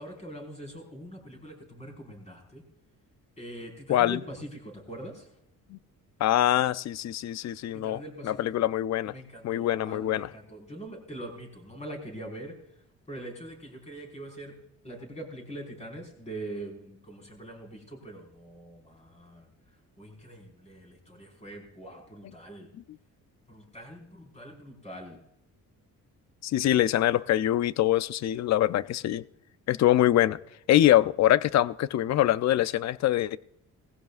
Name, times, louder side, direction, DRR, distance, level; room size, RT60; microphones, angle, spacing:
voice 1, 0.0-2.6 3.4-5.3 7.7-8.5 9.0-12.5 13.1-14.6 14.8-19.5 20.0-22.7 23.5-25.2, right 1 dB, 20° left, 5.0 m, -43 dB
voice 2, 3.9-4.2 5.7-5.8 6.2-9.1 9.4-10.3 26.4-29.2 29.7-30.4 30.7-33.4, left 13 dB, 55° left, 0.5 m, -24 dB
19.0 x 16.0 x 2.5 m
cardioid pair, 125°, 34 cm